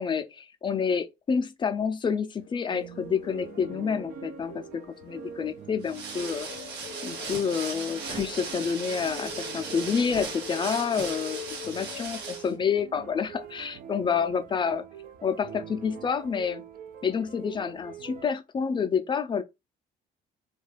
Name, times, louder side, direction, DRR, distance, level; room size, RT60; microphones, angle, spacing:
voice 1, 0.0-6.5 7.0-11.4 11.7-14.8 15.2-16.6 17.0-19.4, left 6 dB, 30° left, 0.4 m, -28 dB
sound 1, 2.4-5.8 6.3-12.1, left 13 dB, 90° left, 0.5 m, -45 dB
sound 2, 2.7-18.3, right 8 dB, 55° right, 0.4 m, -45 dB
sound 3, 5.8-12.5, right 4 dB, 90° right, 1.0 m, -37 dB
2.3 x 2.2 x 3.1 m
cardioid pair, 110°, 17 cm